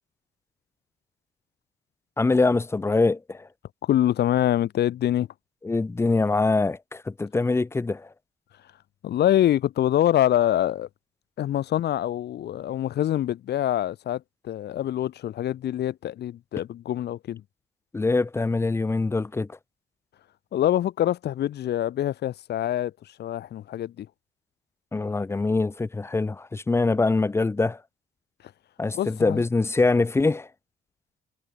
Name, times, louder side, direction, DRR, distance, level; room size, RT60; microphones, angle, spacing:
voice 1, 2.2-3.5 5.6-8.1 17.9-19.6 24.9-27.8 28.8-30.5, left 3 dB, 15° left, 0.4 m, -24 dB
voice 2, 3.8-5.3 9.0-10.9 11.4-17.4 20.5-22.9 23.2-24.1 28.9-29.4, left 12 dB, 55° left, 0.6 m, -25 dB
cardioid pair, 90°, 20 cm